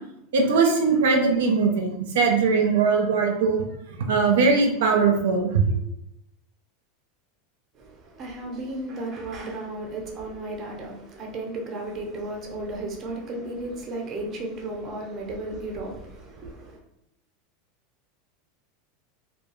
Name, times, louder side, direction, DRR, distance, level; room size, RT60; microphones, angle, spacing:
voice 1, 0.3-3.7 4.1-5.8, right 4 dB, 85° right, 0.5 m, -20 dB
voice 2, 7.7-16.8, right 2 dB, 30° right, 0.7 m, -34 dB
2.2 x 2.2 x 3.0 m
supercardioid pair, 135°, 0 cm